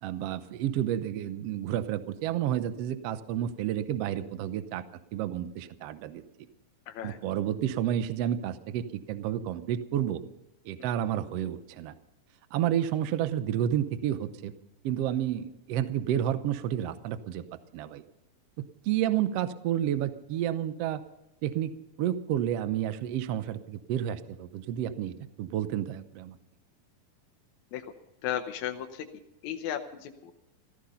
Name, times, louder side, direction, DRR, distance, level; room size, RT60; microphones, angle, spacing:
voice 1, 0.0-4.8 5.1-6.2 7.0-10.2 10.6-11.9 12.5-14.5 14.8-17.4 17.7-18.0 18.6-21.0 21.4-21.7 22.0-26.4, right 11 dB, 80° right, 12 dB, 1.4 m, -30 dB
voice 2, 6.9-7.2 27.7-27.9 28.2-29.1 29.4-30.3, left 10 dB, 70° left, 5 dB, 1.9 m, -35 dB
15.5 x 14.5 x 5.6 m, 0.90 s
omnidirectional pair, 4.0 m